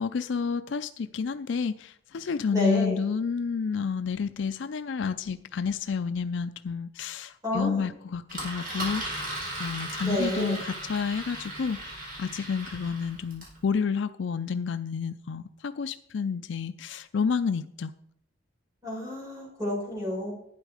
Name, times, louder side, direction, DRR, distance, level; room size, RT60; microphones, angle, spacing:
voice 1, 0.0-17.9, left 5 dB, 65° left, 11 dB, 0.4 m, -30 dB
voice 2, 2.5-3.0 7.4-7.8 10.0-10.6 18.8-20.3, left 1 dB, 20° right, -4 dB, 6.0 m, -30 dB
Engine, 8.3-13.6, right 1 dB, 45° right, 5.2 m, -37 dB
11.5 x 9.2 x 4.9 m, 0.71 s
head